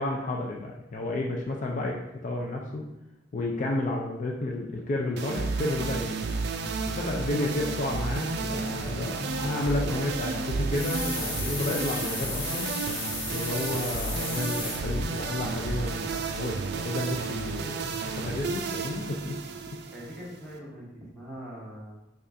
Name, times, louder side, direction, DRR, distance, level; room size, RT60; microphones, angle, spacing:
voice 1, 0.0-2.8 3.3-6.2 6.9-12.8 13.3-19.4, left 2 dB, 40° left, -1 dB, 0.4 m, -31 dB
sound 1, 5.2-20.6, right 4 dB, 60° right, 0.3 m, -32 dB
sound 2, 10.7-14.8, left 3 dB, 75° left, 0.9 m, -35 dB
voice 2, 19.9-22.0, equal, ahead, -6 dB, 0.9 m, -42 dB
5.0 x 2.4 x 2.5 m, 0.93 s
head